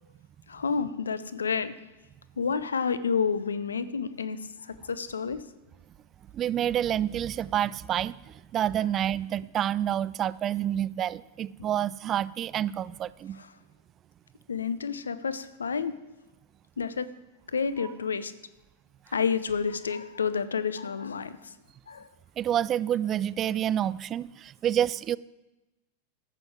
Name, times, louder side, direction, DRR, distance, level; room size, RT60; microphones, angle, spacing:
voice 1, 0.5-1.7 2.4-5.4 13.3-13.5 14.5-15.9 16.8-17.1 17.5-18.3 19.1-21.5 21.9-22.1, left 6 dB, 70° left, 13 dB, 0.7 m, -30 dB
voice 2, 6.3-13.4 22.4-25.2, right 10 dB, 30° right, 20 dB, 0.3 m, -28 dB
13.5 x 7.9 x 4.8 m, 1.0 s
figure-of-eight pair, 90°, 0 cm